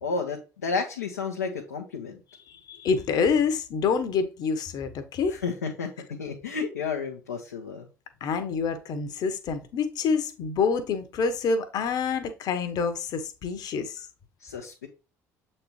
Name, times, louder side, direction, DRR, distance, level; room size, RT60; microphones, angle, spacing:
voice 1, 0.0-2.2 5.3-7.9 14.4-14.9, left 4 dB, 80° left, 1.0 m, -32 dB
voice 2, 2.5-5.4 8.2-14.1, left 5 dB, 50° left, 1.2 m, -27 dB
7.8 x 4.3 x 3.2 m
figure-of-eight pair, 55°, 9 cm